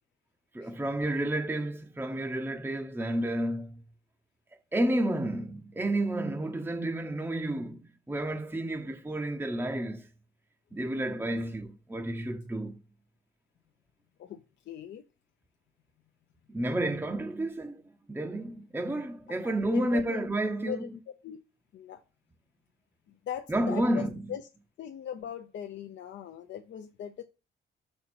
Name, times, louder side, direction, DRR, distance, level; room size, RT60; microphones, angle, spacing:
voice 1, 0.5-3.8 4.7-7.8 8.1-10.1 10.7-12.8 16.5-17.8 18.1-20.9 23.5-24.2, right 1 dB, 10° right, 0.6 m, -31 dB
voice 2, 14.2-15.0 19.3-21.4 21.7-22.0 23.3-24.4 24.8-27.2, left 10 dB, 65° left, 0.6 m, -40 dB
5.7 x 4.4 x 4.2 m
cardioid pair, 90°, 20 cm